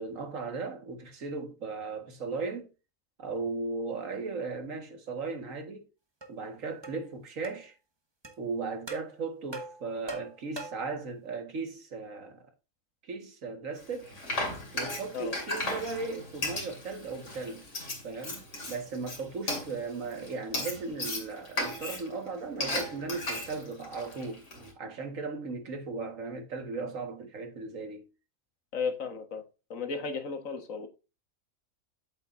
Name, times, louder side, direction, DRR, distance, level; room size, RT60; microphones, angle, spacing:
voice 1, 0.0-2.7 3.2-5.9 6.3-7.7 8.4-12.4 13.0-14.1 14.7-17.7 18.0-24.5 24.8-28.0, right 4 dB, 80° right, 2.0 m, -37 dB
sound 1, 6.2-6.3 6.8-7.0 7.4-7.6 8.2-8.4 8.9-9.1 9.5-10.9, right 2 dB, 20° right, 1.2 m, -41 dB
Frying (food), 13.8-24.7, left 1 dB, 70° left, 2.9 m, -36 dB
voice 2, 28.7-29.4 29.7-30.9, left 5 dB, 85° left, 1.8 m, -34 dB
8.1 x 7.7 x 2.6 m
omnidirectional pair, 1.3 m